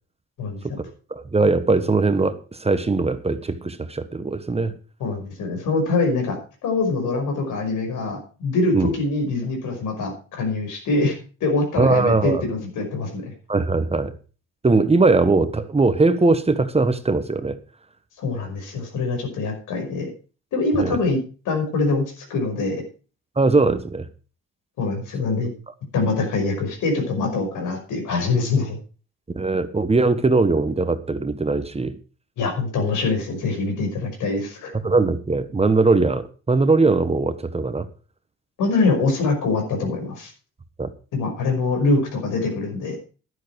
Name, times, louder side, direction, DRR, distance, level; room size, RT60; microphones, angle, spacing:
voice 1, 0.4-0.8 5.0-6.4 6.6-13.2 18.2-20.1 20.5-21.2 21.5-22.8 24.8-25.5 25.9-28.8 32.4-34.7 38.6-40.3 41.1-43.0, left 3 dB, 85° left, 5.6 m, -24 dB
voice 2, 1.1-4.7 8.7-8.9 11.8-12.4 13.5-14.1 14.6-17.6 20.8-21.0 23.4-24.0 29.3-31.9 34.8-37.9 40.8-40.9, right 3 dB, 20° right, 1.2 m, -20 dB
11.5 x 10.5 x 4.6 m
cardioid pair, 90°, 30 cm